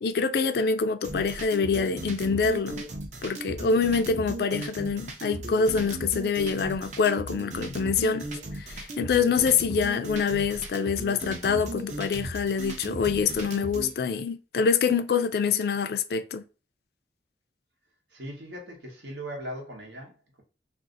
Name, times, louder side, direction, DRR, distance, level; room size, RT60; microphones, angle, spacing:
voice 1, 0.0-2.8 3.2-8.3 8.6-16.4, left 5 dB, 60° left, 0.3 m, -25 dB
sound 1, 1.0-13.9, right 1 dB, 40° right, 0.6 m, -36 dB
voice 2, 18.1-20.4, equal, 85° right, 1.1 m, -39 dB
2.6 x 2.4 x 3.7 m
head